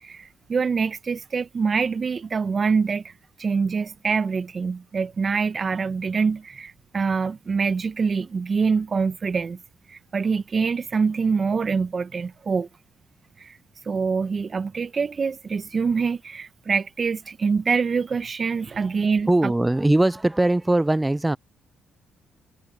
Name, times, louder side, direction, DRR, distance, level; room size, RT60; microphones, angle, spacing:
voice 1, 0.0-3.1 3.4-9.6 9.9-12.7 13.4-13.6 13.8-19.5, right 5 dB, 40° right, 0.9 m, -25 dB
voice 2, 19.3-21.4, right 1 dB, 10° right, 0.4 m, -20 dB
cardioid pair, 90°, 0 cm